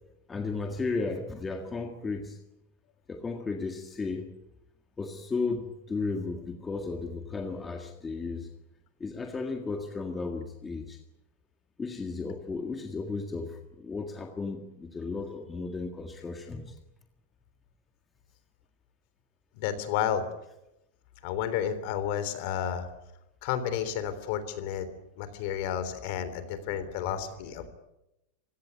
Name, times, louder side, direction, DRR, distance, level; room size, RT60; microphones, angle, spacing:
voice 1, 0.3-2.4 3.1-4.3 5.0-8.5 9.0-11.0 11.8-16.7, left 4 dB, 10° left, 4 dB, 1.7 m, -34 dB
voice 2, 19.5-20.3 21.2-22.9 23.4-24.9 25.2-27.7, left 9 dB, 50° left, 12 dB, 3.5 m, -31 dB
27.5 x 17.0 x 9.6 m, 0.90 s
supercardioid pair, 165°, 0 cm